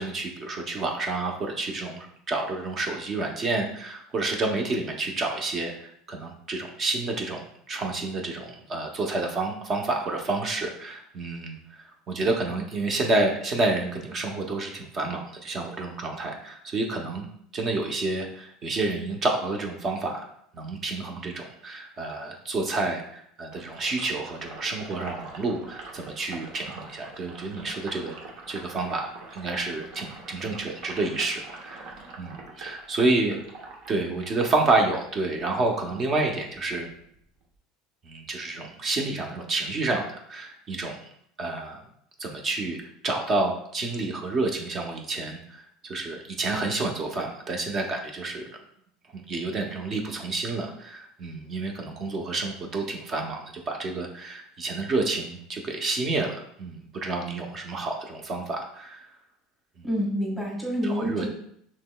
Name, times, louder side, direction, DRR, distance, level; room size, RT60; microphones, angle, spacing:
voice 1, 0.0-17.3 17.5-20.2 20.5-28.1 28.5-33.4 33.9-36.9 38.0-40.0 40.3-41.0 41.4-41.8 42.2-42.8 43.0-48.6 49.1-59.0 59.8-59.9 61.0-61.2, right 2 dB, 35° right, 2 dB, 0.8 m, -29 dB
Sink (filling or washing), 23.5-35.8 36.1-37.6, right 3 dB, 65° right, 1.0 m, -45 dB
voice 2, 59.8-61.3, equal, 10° right, -2 dB, 1.4 m, -28 dB
5.8 x 3.1 x 2.3 m, 0.68 s
supercardioid pair, 120°, 0 cm